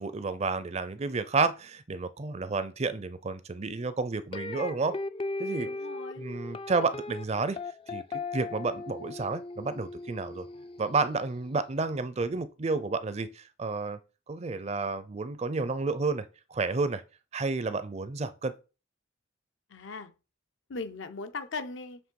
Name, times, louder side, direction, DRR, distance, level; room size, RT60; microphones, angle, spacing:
voice 1, 0.0-5.0 5.4-5.7 6.2-7.6 7.9-8.0 8.3-10.5 10.8-14.0 14.3-16.2 16.5-17.0 17.3-18.5, right 4 dB, 35° right, 0.5 m, -30 dB
sound 1, 4.3-11.4, left 3 dB, 30° left, 0.3 m, -38 dB
voice 2, 5.6-6.2 19.7-20.1 20.7-22.0, left 3 dB, 80° left, 0.8 m, -38 dB
7.2 x 3.4 x 4.6 m
head